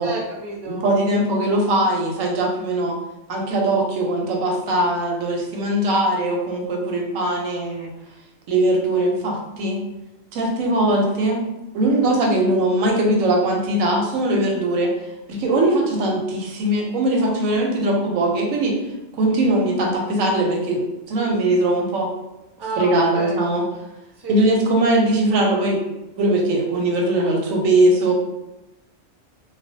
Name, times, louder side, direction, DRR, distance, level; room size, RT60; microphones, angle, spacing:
voice 1, 0.0-0.8 11.8-12.2 17.2-17.3 22.6-23.4 24.2-24.6, right 2 dB, 45° right, -3 dB, 0.3 m, -31 dB
voice 2, 0.7-3.0 3.3-7.9 8.5-9.8 10.3-11.4 11.7-14.9 15.3-18.7 19.1-20.8 21.1-22.1 22.8-23.6 24.3-25.8 26.2-28.1, right 1 dB, 90° right, 1 dB, 1.0 m, -20 dB
2.4 x 2.0 x 2.6 m, 0.98 s
omnidirectional pair, 1.3 m